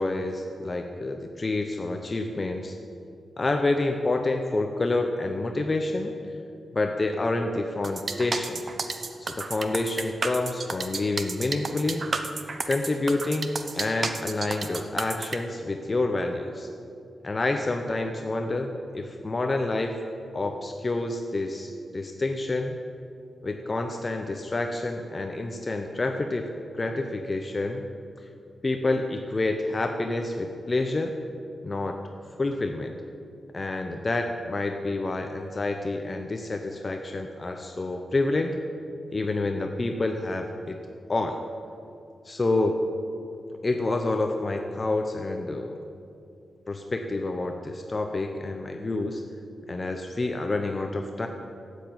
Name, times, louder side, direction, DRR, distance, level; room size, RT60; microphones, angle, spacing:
voice 1, 0.0-2.8 3.4-6.1 6.7-8.6 9.2-12.1 12.7-16.7 17.2-20.0 20.3-22.8 23.4-27.8 28.6-31.1 31.6-32.0 32.4-33.0 33.5-38.6 39.1-40.8 41.1-41.4 42.2-42.8 43.6-45.8 46.7-49.2 49.7-51.3, left 2 dB, 25° left, 4 dB, 0.7 m, -28 dB
sound 1, 7.8-15.4, right 4 dB, 35° right, 0.8 m, -32 dB
13.0 x 8.2 x 8.8 m, 2.5 s
wide cardioid pair, 170°, 0 cm